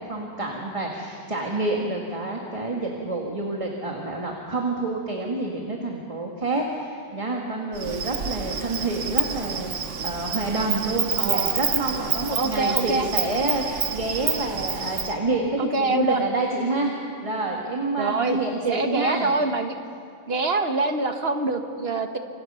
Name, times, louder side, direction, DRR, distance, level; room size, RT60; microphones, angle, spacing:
voice 1, 0.0-17.0 17.2-19.3, right 2 dB, 25° right, 0 dB, 2.1 m, -28 dB
Insect, 7.7-15.1, right 7 dB, 90° right, 1.4 m, -28 dB
voice 2, 11.2-11.6 12.3-13.1 15.6-16.2 18.0-18.4 18.7-19.8 20.3-22.2, right 3 dB, 55° right, 6 dB, 1.7 m, -25 dB
28.5 x 26.0 x 5.7 m, 2.3 s
omnidirectional pair, 1.2 m